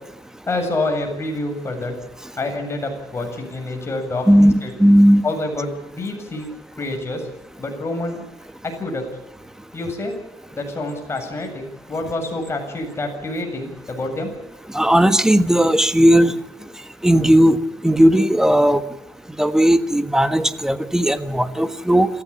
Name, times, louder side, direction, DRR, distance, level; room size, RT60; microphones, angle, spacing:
voice 1, 0.5-1.9 2.4-4.7 5.2-6.5 6.8-7.2 7.6-8.2 8.6-9.0 9.7-10.1 10.5-14.3, left 2 dB, 25° left, 2 dB, 7.6 m, -27 dB
voice 2, 4.8-5.2 14.7-16.3 17.0-17.6 17.8-18.8 19.4-22.1, equal, 5° right, 11 dB, 1.5 m, -15 dB
28.0 x 15.0 x 8.7 m, 0.90 s
cardioid pair, 120°, 10 cm